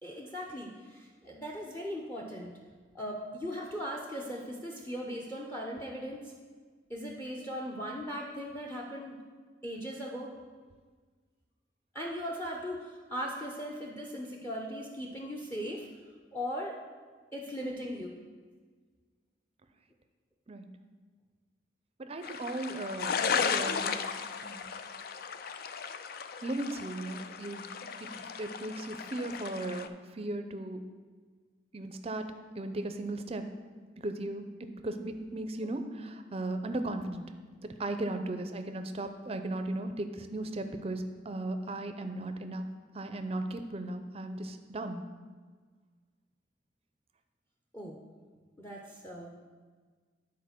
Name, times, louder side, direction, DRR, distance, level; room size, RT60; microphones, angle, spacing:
voice 1, 0.0-2.5 2.9-6.3 6.9-9.2 9.6-10.3 11.9-15.9 16.3-16.8 17.3-18.2 47.7-48.0 48.6-49.4, equal, 10° left, -1 dB, 0.6 m, -38 dB
voice 2, 22.0-24.1 24.4-24.6 26.4-27.6 28.0-28.1 28.4-29.9 30.1-30.8 31.7-32.3 32.6-33.4 34.0-34.5 34.8-37.2 37.8-45.0, right 2 dB, 30° right, 8 dB, 0.5 m, -36 dB
sound 1, 22.2-29.9, left 6 dB, 50° left, 0.4 m, -35 dB
9.6 x 4.3 x 5.9 m, 1.5 s
head